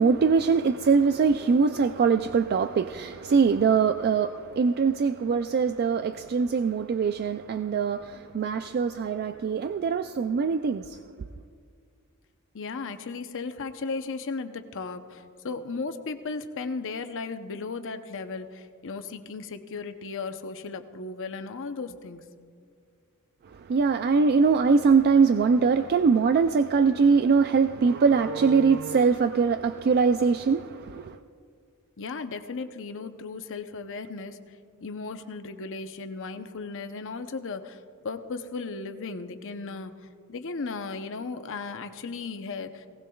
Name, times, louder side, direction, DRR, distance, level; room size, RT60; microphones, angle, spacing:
voice 1, 0.0-11.0 23.5-31.2, right 5 dB, 45° right, 0.3 m, -22 dB
voice 2, 12.5-22.2 32.0-34.4 34.8-39.9 40.3-42.9, left 4 dB, 60° left, 0.7 m, -36 dB
19.0 x 17.5 x 2.3 m
head